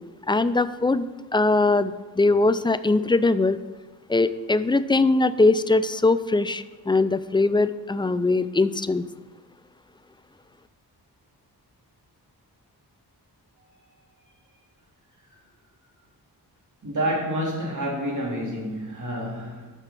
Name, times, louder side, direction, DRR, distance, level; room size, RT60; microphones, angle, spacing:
voice 1, 0.3-1.1 1.3-3.6 4.1-9.0, left 3 dB, 15° left, 14 dB, 0.3 m, -21 dB
voice 2, 16.8-19.7, equal, 45° right, -3 dB, 3.0 m, -28 dB
6.8 x 5.8 x 5.7 m, 1.2 s
cardioid pair, 60°, 40 cm